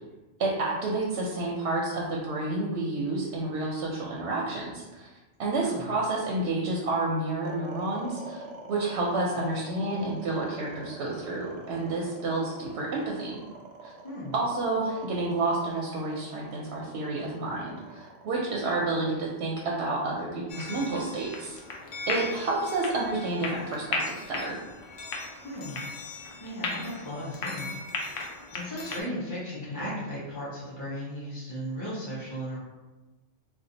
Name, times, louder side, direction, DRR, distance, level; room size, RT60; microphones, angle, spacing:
voice 1, 0.4-5.1 5.4-13.4 13.8-13.9 14.3-21.6 22.1-24.6, right 2 dB, 65° right, -2 dB, 0.8 m, -30 dB
sound 1, 7.4-19.7, right 2 dB, 90° right, 0.3 m, -45 dB
voice 2, 14.0-14.3 25.4-25.8 26.4-32.6, equal, 15° left, -9 dB, 0.8 m, -36 dB
sound 2, 20.5-29.0, left 3 dB, 60° left, 0.6 m, -36 dB
2.6 x 2.2 x 3.8 m, 1.2 s
omnidirectional pair, 1.3 m